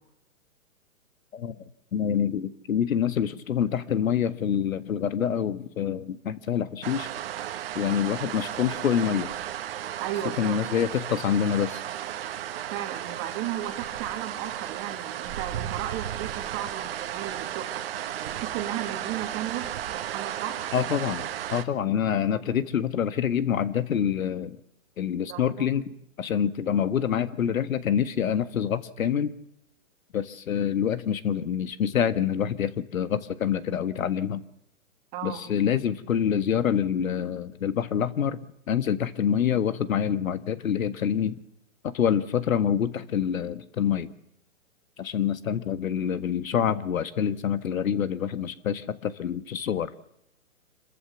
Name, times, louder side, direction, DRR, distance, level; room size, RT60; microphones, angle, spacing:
voice 1, 1.3-1.6 1.9-7.1 7.8-9.3 10.4-11.8 20.7-24.6 25.0-25.8 26.2-29.3 30.1-34.4 35.2-38.4 38.7-41.4 41.8-44.1 45.0-49.9, left 8 dB, 70° left, 13 dB, 1.6 m, -26 dB
sound 1, 6.8-21.6, right 11 dB, 40° right, 1.5 m, -34 dB
voice 2, 10.0-10.6 12.7-17.8 18.2-19.7 20.0-20.6 25.3-25.7 35.1-35.4, right 11 dB, 25° right, 6 dB, 2.0 m, -35 dB
27.0 x 14.0 x 7.2 m, 0.82 s
hypercardioid pair, 150°, 42 cm